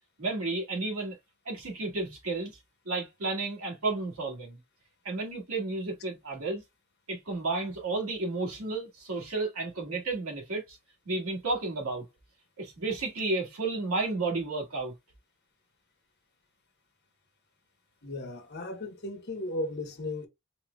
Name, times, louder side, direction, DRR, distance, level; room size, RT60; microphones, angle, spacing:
voice 1, 0.2-1.2 1.5-2.6 2.9-4.6 5.0-6.6 7.1-10.8 11.1-12.1 12.6-14.9, right 3 dB, 85° right, 2.0 m, -32 dB
voice 2, 18.0-20.3, left 1 dB, 50° left, 1.0 m, -35 dB
4.5 x 3.7 x 2.2 m
head